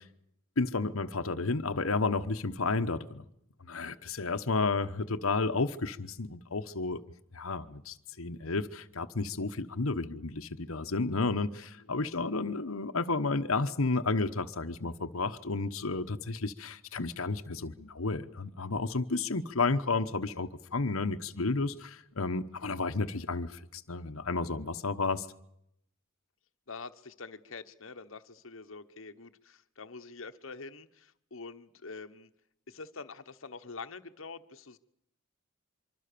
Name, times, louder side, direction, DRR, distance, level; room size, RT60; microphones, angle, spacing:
voice 1, 0.6-3.2 3.7-7.0 7.3-25.3, left 3 dB, 90° left, 1.2 m, -32 dB
voice 2, 26.7-32.3 32.7-34.8, left 4 dB, 65° left, 1.3 m, -46 dB
25.0 x 24.5 x 6.9 m
head